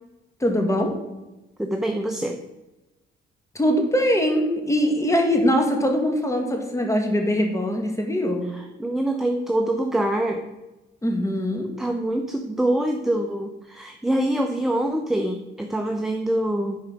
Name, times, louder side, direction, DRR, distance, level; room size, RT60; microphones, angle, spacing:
voice 1, 0.4-0.9 3.5-8.5 11.0-11.7, equal, 15° left, 3 dB, 2.1 m, -22 dB
voice 2, 1.6-2.4 8.5-10.4 11.8-16.8, right 1 dB, ahead, 4 dB, 0.8 m, -25 dB
10.5 x 4.7 x 6.1 m, 1.0 s
cardioid pair, 90°, 20 cm